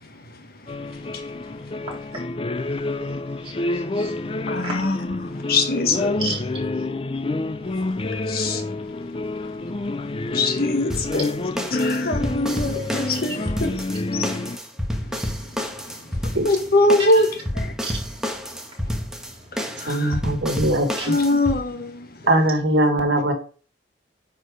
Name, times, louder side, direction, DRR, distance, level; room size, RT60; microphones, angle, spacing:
sound 1, 0.7-14.6, left 2 dB, 30° left, 0.5 m, -28 dB
voice 1, 2.5-4.7 6.2-6.4 7.1-8.2 17.1-17.2 17.8-19.6 21.0-21.1 22.2-22.4, right 3 dB, 30° right, 4.0 m, -38 dB
voice 2, 4.5-6.3 8.3-8.6 9.0-9.1 9.6-9.7 10.2-11.3 11.7-13.7 14.0-14.3 16.4-17.3 17.5-17.7 19.8-20.2 21.1-22.1, left 2 dB, 60° left, 1.5 m, -23 dB
sound 2, 10.9-21.6, equal, 5° right, 1.3 m, -30 dB
voice 3, 19.9-21.2 22.3-23.3, right 1 dB, 90° right, 1.7 m, -20 dB
9.8 x 4.7 x 5.0 m
head